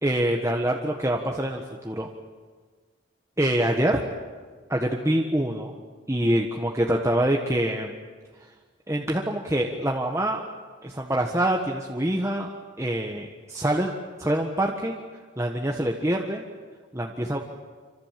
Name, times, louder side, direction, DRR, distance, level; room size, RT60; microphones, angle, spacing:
voice 1, 0.0-2.1 3.4-4.0 4.7-5.7 6.1-7.9 8.9-10.4 10.8-12.5 12.8-13.9 14.2-15.0 15.4-16.4 16.9-17.4, right 1 dB, 15° right, 0 dB, 1.4 m, -25 dB
28.0 x 25.0 x 7.6 m, 1.5 s
head